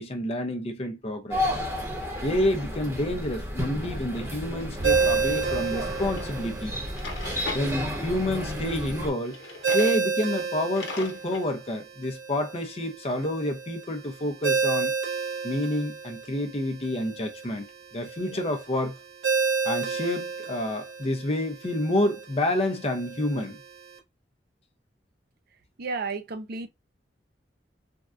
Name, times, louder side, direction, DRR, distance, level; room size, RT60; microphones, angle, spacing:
voice 1, 0.0-1.4 2.2-6.7 7.5-9.4 9.7-14.9 15.4-17.7 17.9-19.0 19.6-23.6, left 1 dB, 35° left, 0.6 m, -28 dB
sound 1, 1.3-9.1, left 1 dB, 15° right, 1.0 m, -32 dB
Ringtone, 4.8-24.0, right 5 dB, 75° right, 1.0 m, -31 dB
Drawer open or close, 6.2-6.3 6.8-7.7 9.2-10.0 10.4-10.5 10.7-11.5, left 4 dB, 90° left, 0.8 m, -38 dB
voice 2, 25.8-26.7, right 4 dB, 60° right, 0.5 m, -33 dB
3.5 x 2.3 x 2.4 m
head